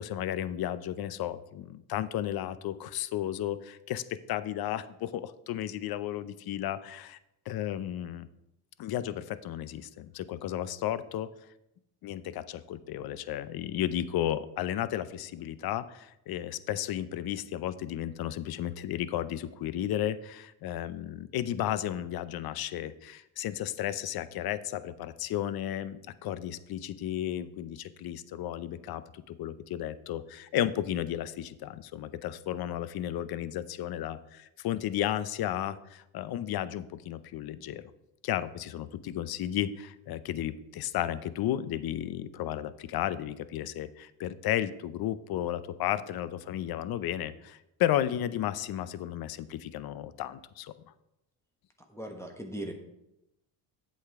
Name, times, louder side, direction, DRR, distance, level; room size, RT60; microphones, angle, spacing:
voice 1, 0.0-4.0 4.3-7.2 7.5-8.3 8.8-11.3 12.0-37.8 38.2-50.7, left 12 dB, 50° left, 15 dB, 0.6 m, -33 dB
voice 2, 51.9-52.7, right 1 dB, 5° left, 2 dB, 1.1 m, -38 dB
8.2 x 7.9 x 3.5 m, 0.86 s
cardioid pair, 115°, 47 cm